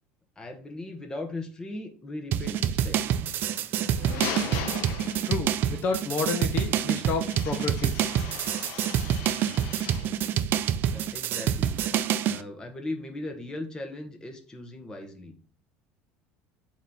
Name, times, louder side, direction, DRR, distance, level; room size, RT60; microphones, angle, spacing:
voice 1, 0.4-3.2 10.9-11.8 12.2-15.3, left 2 dB, 15° left, 3 dB, 1.3 m, -38 dB
sound 1, 2.3-12.4, right 10 dB, 50° right, 0.5 m, -27 dB
sound 2, 3.7-5.6 7.2-10.2, left 7 dB, 70° left, 0.9 m, -38 dB
voice 2, 5.3-8.0, left 5 dB, 45° left, 5 dB, 1.0 m, -30 dB
8.2 x 3.2 x 4.2 m, 0.40 s
cardioid pair, 125°, 5 cm